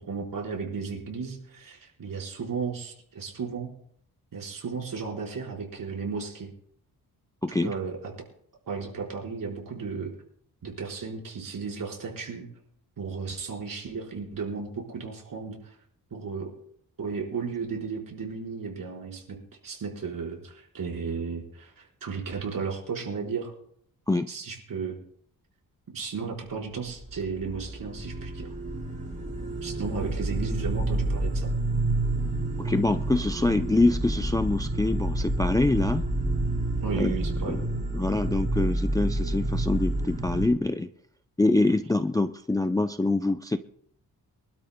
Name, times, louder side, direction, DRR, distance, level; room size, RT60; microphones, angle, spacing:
voice 1, 0.0-3.7 4.3-6.5 7.5-8.1 8.7-10.1 10.6-12.5 13.0-15.7 16.1-16.5 17.0-19.4 19.6-23.5 24.3-25.0 25.9-28.5 29.6-31.5 36.8-37.6, right 5 dB, 65° right, -1 dB, 4.5 m, -34 dB
voice 2, 7.4-7.7 24.1-24.3 32.6-36.0 36.9-37.2 37.5-37.7 37.9-40.9 41.4-43.6, left 2 dB, 10° left, 8 dB, 0.4 m, -25 dB
sound 1, 26.9-40.5, right 2 dB, 20° right, 3.3 m, -29 dB
25.0 x 12.5 x 2.2 m, 0.68 s
wide cardioid pair, 110°, 37 cm